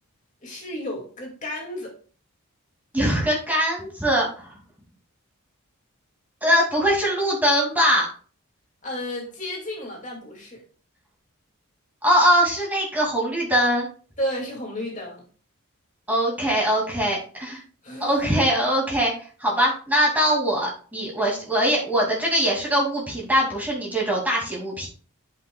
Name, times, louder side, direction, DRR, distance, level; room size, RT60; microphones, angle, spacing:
voice 1, 0.4-1.9 8.8-10.6 14.2-15.3 17.8-18.5, equal, 35° left, -1 dB, 2.2 m, -32 dB
voice 2, 2.9-4.5 6.4-8.1 12.0-13.9 16.1-17.6 18.0-19.1 19.4-24.9, equal, 10° right, -3 dB, 2.3 m, -22 dB
12.0 x 5.7 x 2.3 m, 0.41 s
head